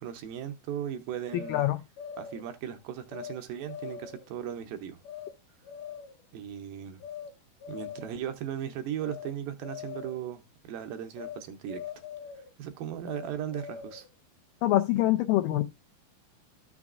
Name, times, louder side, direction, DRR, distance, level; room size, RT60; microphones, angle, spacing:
voice 1, 0.0-1.6 2.2-5.0 6.3-7.0 7.7-11.8 12.4-14.1, right 9 dB, 80° right, 2.2 m, -37 dB
sound 1, 1.3-2.4 3.1-3.4 3.7-4.3 5.0-5.3 5.6-6.2 7.0-7.3 7.6-8.2 9.0-9.3 9.6-10.2 11.2-11.4 11.7-12.5 13.0-14.1, left 8 dB, 70° left, 2.2 m, -42 dB
voice 2, 14.6-15.6, left 15 dB, 85° left, 1.9 m, -24 dB
13.0 x 6.0 x 2.4 m
omnidirectional pair, 4.5 m